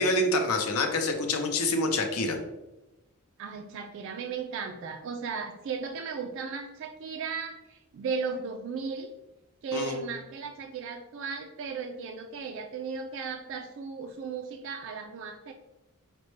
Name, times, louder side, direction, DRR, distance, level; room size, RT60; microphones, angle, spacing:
voice 1, 0.0-2.4 9.7-10.0, left 2 dB, 85° left, 5 dB, 0.6 m, -26 dB
voice 2, 3.4-9.1 9.6-15.5, right 5 dB, 60° right, 4 dB, 0.3 m, -36 dB
5.1 x 2.1 x 3.1 m, 0.99 s
head